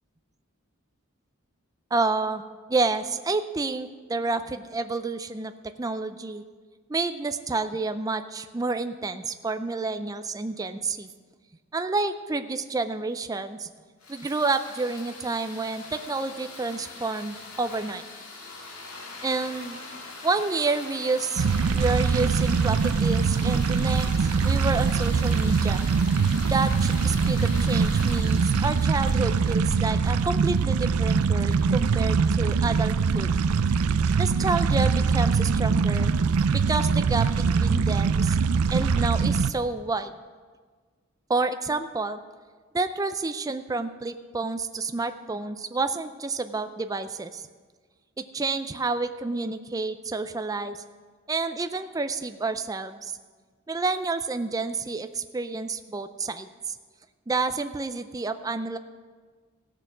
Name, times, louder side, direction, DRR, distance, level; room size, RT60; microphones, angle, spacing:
voice 1, 1.9-2.4 2.7-5.5 5.8-6.4 6.9-11.1 11.7-13.7 14.1-18.0 19.2-19.8 20.2-21.5 21.7-25.8 26.5-33.3 34.2-36.1 36.5-38.4 38.7-40.1 41.3-42.2 42.7-47.4 48.2-50.8 51.3-53.1 53.7-56.5 57.3-58.8, right 3 dB, 15° right, 10 dB, 0.4 m, -29 dB
sound 1, 14.0-30.2, left 3 dB, 85° left, 2.1 m, -42 dB
sound 2, 21.4-39.5, right 5 dB, 90° right, 0.4 m, -23 dB
15.5 x 6.7 x 6.0 m, 1.5 s
head